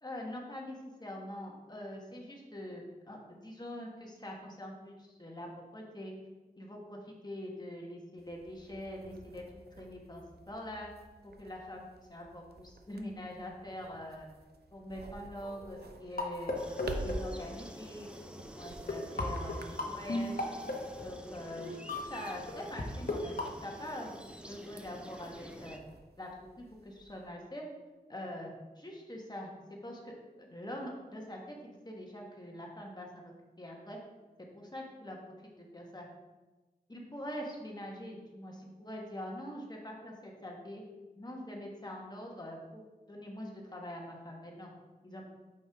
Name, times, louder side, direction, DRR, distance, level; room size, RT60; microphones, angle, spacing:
voice 1, 0.0-6.1 6.6-9.4 9.8-10.9 11.2-14.3 14.7-16.5 17.0-18.1 18.6-20.5 21.0-25.8 26.2-26.3 26.6-27.7 28.1-29.5 29.8-34.0 34.5-36.1 36.9-40.8 41.2-42.8 43.1-44.7 45.0-45.2, left 1 dB, 25° left, -1 dB, 1.5 m, -44 dB
sound 1, 8.2-27.3, right 2 dB, 75° right, 0.6 m, -50 dB
sound 2, 15.4-17.9 18.6-18.7 18.9-22.8 23.1-23.5, left 2 dB, 60° left, 1.1 m, -37 dB
sound 3, 16.6-25.8, equal, 5° right, 0.6 m, -49 dB
6.5 x 5.3 x 3.6 m, 1.2 s
wide cardioid pair, 60°, 16 cm